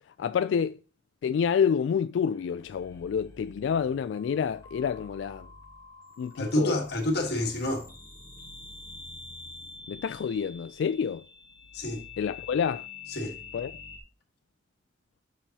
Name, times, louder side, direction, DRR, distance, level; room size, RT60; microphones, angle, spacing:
voice 1, 0.2-0.8 1.2-5.5 6.2-6.8 9.9-11.2 12.2-12.9 13.5-13.7, left 7 dB, 75° left, 0.3 m, -28 dB
sound 1, 2.3-14.0, left 4 dB, 20° left, 1.2 m, -47 dB
voice 2, 6.4-7.9 11.7-12.0 13.1-13.4, left 1 dB, 60° left, 1.5 m, -28 dB
8.8 x 6.3 x 2.8 m
head